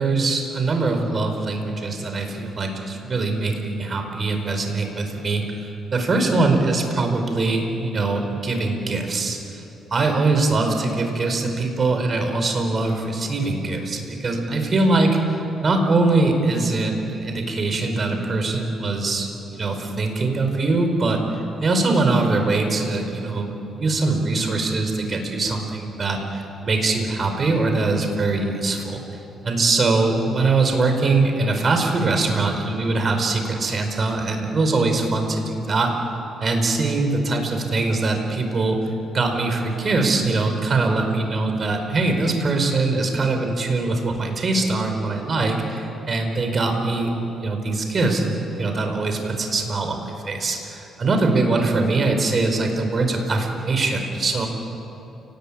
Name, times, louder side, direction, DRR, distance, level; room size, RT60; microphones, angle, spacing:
voice 1, 0.0-5.7 5.9-9.4 9.9-21.2 21.6-29.0 29.4-35.9 36.4-38.8 39.1-54.5, right 3 dB, 40° right, 4 dB, 4.8 m, -22 dB
29.5 x 19.5 x 8.8 m, 2.9 s
cardioid pair, 90°, 0 cm